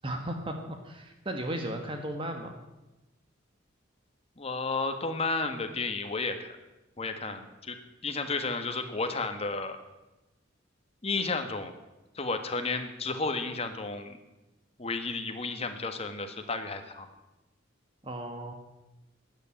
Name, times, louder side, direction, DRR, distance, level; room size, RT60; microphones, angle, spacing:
voice 1, 0.0-2.6 18.0-18.5, right 1 dB, 25° right, 4 dB, 1.4 m, -35 dB
voice 2, 4.4-6.6 7.0-7.8 8.0-9.8 11.0-11.8 12.1-14.2 14.8-17.1, left 3 dB, 30° left, 7 dB, 1.5 m, -32 dB
13.5 x 9.4 x 10.0 m, 1.0 s
head